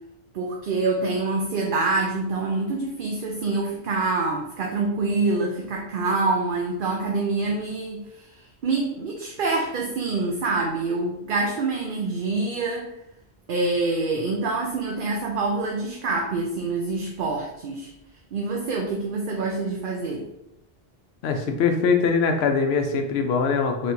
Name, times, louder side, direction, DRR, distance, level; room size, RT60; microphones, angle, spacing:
voice 1, 0.3-12.9 13.5-17.9 18.3-20.3, right 3 dB, 60° right, 0 dB, 0.7 m, -26 dB
voice 2, 21.2-23.9, left 5 dB, 85° left, 4 dB, 0.8 m, -22 dB
4.4 x 3.3 x 2.6 m, 0.84 s
omnidirectional pair, 1.0 m